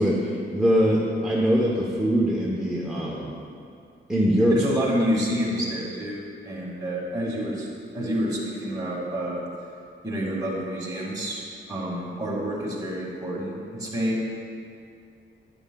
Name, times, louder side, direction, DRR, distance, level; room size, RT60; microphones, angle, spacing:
voice 1, 0.0-3.4 4.1-4.6, equal, ahead, -4 dB, 0.8 m, -22 dB
voice 2, 4.5-7.7 7.9-9.5 10.0-11.4 11.7-14.2, equal, 20° right, -5 dB, 2.0 m, -28 dB
10.5 x 10.0 x 2.3 m, 2.4 s
wide cardioid pair, 150°, 20 cm